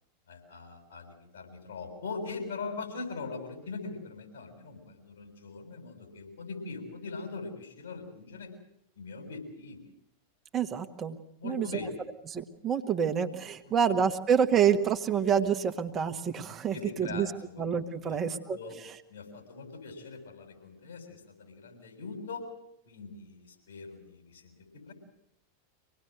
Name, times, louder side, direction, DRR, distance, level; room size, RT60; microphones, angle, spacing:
voice 1, 0.3-8.5 9.0-9.8 11.4-12.0 13.6-13.7 16.7-17.6 18.0-18.8 19.1-22.4 22.9-24.9, left 4 dB, 65° left, 3 dB, 7.3 m, -41 dB
voice 2, 10.5-11.2 11.4-11.7 12.3-17.3 17.6-18.6, right 7 dB, 25° right, 6 dB, 1.5 m, -27 dB
26.0 x 19.0 x 8.0 m, 0.80 s
figure-of-eight pair, 90°, 0 cm